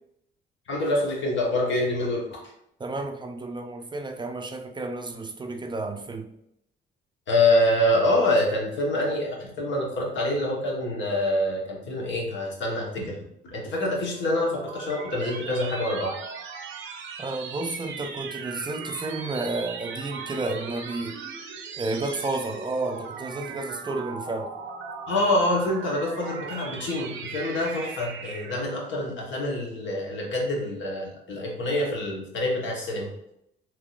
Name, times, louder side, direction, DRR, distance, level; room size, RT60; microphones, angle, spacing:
voice 1, 0.7-2.4 7.3-13.2 13.4-16.2 25.1-33.1, left 1 dB, 70° left, 1.2 m, -26 dB
voice 2, 2.8-6.3 17.2-21.2 21.8-24.5, right 2 dB, 25° right, 0.4 m, -31 dB
sound 1, 14.2-28.8, right 5 dB, 75° right, 0.6 m, -38 dB
3.6 x 3.0 x 2.4 m
cardioid pair, 90°, 20 cm